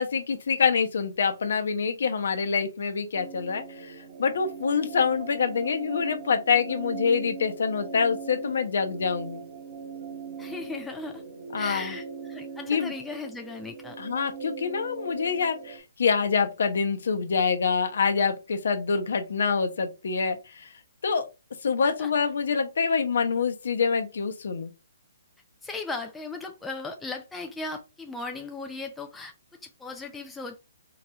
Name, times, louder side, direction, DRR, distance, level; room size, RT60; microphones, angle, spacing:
voice 1, 0.0-9.4 11.5-11.9 12.7-12.9 14.0-20.7 21.0-21.3 21.6-24.7, left 5 dB, 70° left, 0.7 m, -26 dB
sound 1, 3.1-15.8, right 5 dB, 50° right, 1.2 m, -40 dB
voice 2, 10.4-11.3 11.5-14.0 21.8-22.1 25.6-29.3 29.6-30.6, left 3 dB, 5° left, 0.4 m, -37 dB
3.9 x 3.0 x 2.3 m
hypercardioid pair, 155°, 0 cm